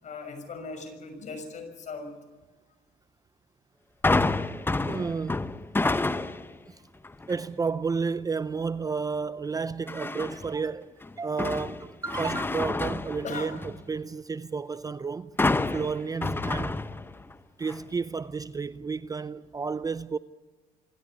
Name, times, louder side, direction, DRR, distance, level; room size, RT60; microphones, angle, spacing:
voice 1, 0.0-2.1 13.2-13.6, left 4 dB, 45° left, 6.3 m, -38 dB
sound 1, 4.0-6.6 7.0-7.4 9.9-10.5 11.0-13.9 15.4-17.3 17.7-17.8, left 2 dB, 15° left, 0.9 m, -29 dB
voice 2, 4.8-5.5 6.7-6.8 7.3-15.4 15.7-16.8 17.6-20.2, right 5 dB, 20° right, 0.6 m, -32 dB
26.0 x 13.5 x 10.0 m
cardioid pair, 110°, 17 cm